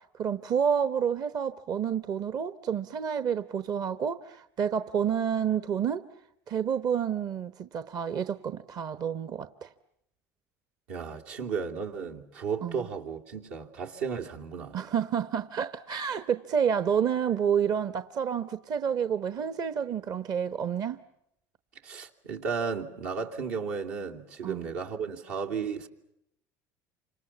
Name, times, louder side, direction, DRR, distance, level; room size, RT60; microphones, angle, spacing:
voice 1, 0.0-6.1 6.5-9.7 12.6-12.8 14.7-21.0 24.4-24.7, right 8 dB, 50° right, 1.0 m, -29 dB
voice 2, 10.9-14.8 21.8-25.9, right 6 dB, 85° right, 2.8 m, -34 dB
28.5 x 26.5 x 7.1 m
supercardioid pair, 95°, 8 cm